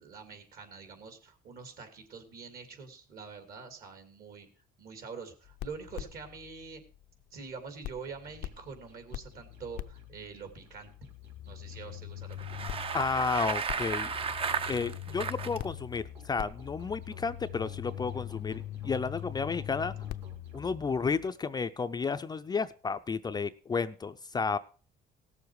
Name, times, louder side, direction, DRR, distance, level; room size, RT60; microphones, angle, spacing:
voice 1, 0.0-4.5 4.8-6.8 7.3-10.9 11.5-12.6, right 5 dB, 60° right, 7 dB, 2.6 m, -45 dB
sound 1, 5.4-7.5 7.8-21.3, left 13 dB, 80° left, 0.6 m, -43 dB
sound 2, 8.0-20.7, right 3 dB, 85° right, 3.9 m, -55 dB
Bicycle, 12.3-15.6, right 5 dB, 35° right, 0.6 m, -34 dB
voice 2, 12.9-14.1 14.7-19.9 20.5-24.6, left 5 dB, 25° left, 10 dB, 0.5 m, -32 dB
17.0 x 7.2 x 4.7 m, 0.39 s
cardioid pair, 110°, 17 cm